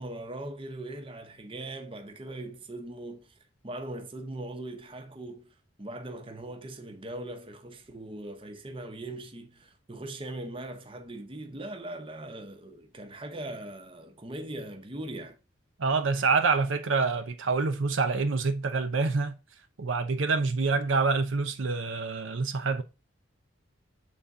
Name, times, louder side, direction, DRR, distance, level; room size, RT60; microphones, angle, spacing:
voice 1, 0.0-3.3 3.6-15.4, right 1 dB, 25° right, 0.8 m, -40 dB
voice 2, 15.8-19.4 19.8-22.8, right 4 dB, 70° right, 0.6 m, -26 dB
7.0 x 4.0 x 3.6 m
head